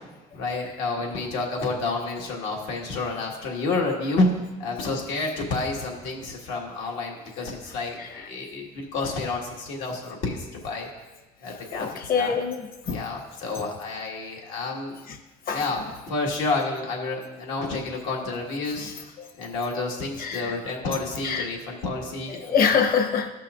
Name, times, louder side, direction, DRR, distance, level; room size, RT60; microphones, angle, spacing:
voice 1, 0.3-4.3 4.6-10.9 11.4-12.3 12.9-14.9 15.5-18.9 19.4-22.7, left 3 dB, 85° left, -1 dB, 1.7 m, -29 dB
voice 2, 11.7-13.0 15.5-15.6 18.8-18.9 20.2-20.6 21.2-21.5 22.4-23.3, left 6 dB, 50° left, 4 dB, 1.1 m, -25 dB
15.0 x 5.7 x 2.5 m, 1.2 s
supercardioid pair, 80°, 19 cm